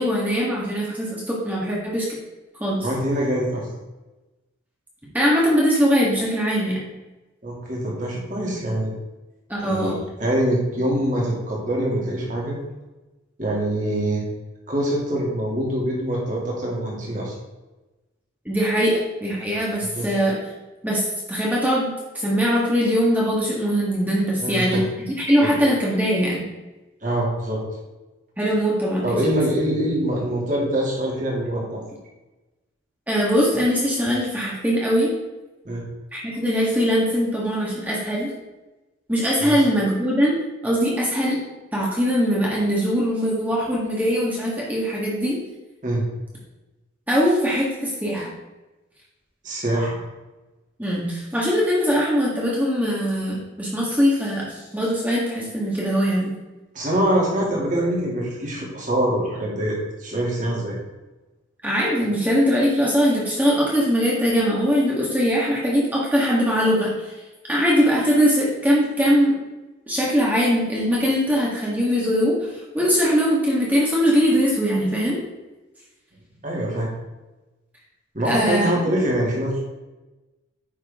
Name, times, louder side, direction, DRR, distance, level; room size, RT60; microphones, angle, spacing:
voice 1, 0.0-2.1 2.6-2.9 5.1-6.8 9.5-10.0 18.4-20.4 20.8-24.8 25.1-26.4 28.4-29.0 33.1-35.1 36.1-38.3 39.1-40.3 40.6-41.4 41.7-45.4 47.1-48.3 50.8-56.3 61.6-67.1 67.5-69.3 69.9-75.2 78.2-78.7, equal, 10° right, -5 dB, 1.7 m, -21 dB
voice 2, 2.8-3.7 7.4-8.9 9.6-12.6 13.4-14.2 14.7-17.4 19.9-20.1 24.4-24.8 25.4-25.5 27.0-27.6 29.0-31.8 35.6-35.8 39.4-39.6 45.8-46.0 49.4-50.0 56.7-60.8 76.4-76.9 78.1-79.6, right 1 dB, 40° right, -3 dB, 2.6 m, -24 dB
9.5 x 6.5 x 3.7 m, 1.1 s
head